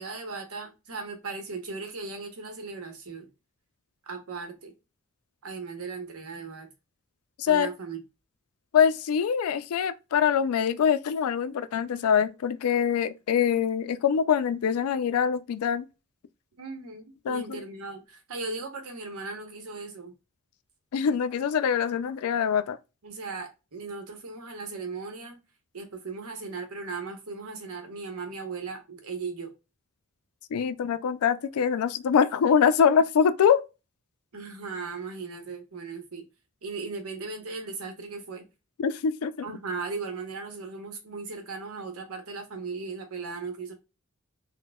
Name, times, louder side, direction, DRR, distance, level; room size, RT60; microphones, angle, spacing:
voice 1, 0.0-3.3 4.1-4.7 5.4-6.7 7.5-8.0 16.6-20.1 23.0-25.4 25.7-29.5 34.3-36.3 36.6-38.4 39.4-43.7, right 4 dB, 85° right, 0.8 m, -37 dB
voice 2, 7.4-7.7 8.7-15.9 17.2-17.6 20.9-22.8 30.5-33.6 38.8-39.5, left 7 dB, 80° left, 0.3 m, -24 dB
4.0 x 2.1 x 2.2 m
head